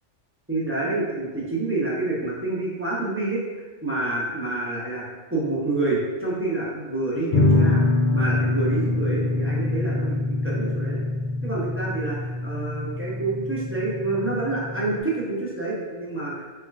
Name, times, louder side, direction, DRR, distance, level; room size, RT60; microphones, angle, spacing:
voice 1, 0.5-3.4 3.8-5.0 5.3-7.8 8.1-11.0 11.4-16.3, right 2 dB, 15° right, -7 dB, 0.7 m, -27 dB
sound 1, 7.3-15.0, left 2 dB, 50° left, 0.6 m, -24 dB
4.4 x 3.2 x 2.3 m, 1.3 s
omnidirectional pair, 1.2 m